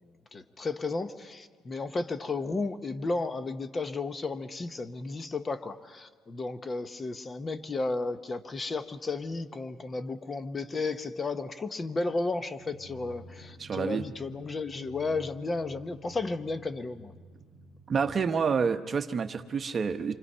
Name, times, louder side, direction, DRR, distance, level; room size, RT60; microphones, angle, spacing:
voice 1, 0.3-17.1, left 3 dB, 20° left, 10 dB, 0.9 m, -33 dB
Drum, 12.6-19.1, left 1 dB, 50° left, 7.8 m, -52 dB
voice 2, 13.6-14.0 17.9-20.1, right 5 dB, 25° right, 7 dB, 0.9 m, -28 dB
28.0 x 25.0 x 5.5 m, 1.5 s
cardioid pair, 160°, 0 cm